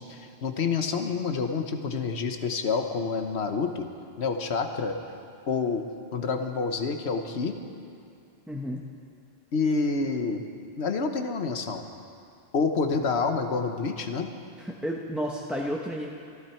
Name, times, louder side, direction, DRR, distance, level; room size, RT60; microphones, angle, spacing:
voice 1, 0.1-3.9 4.2-5.0 5.5-5.8 6.1-7.6 9.5-10.4 10.8-11.8 12.5-14.3, left 4 dB, 70° left, 6 dB, 1.3 m, -28 dB
voice 2, 8.5-8.8 14.6-16.1, equal, ahead, -2 dB, 0.8 m, -32 dB
24.5 x 12.0 x 4.5 m, 2.5 s
omnidirectional pair, 1.1 m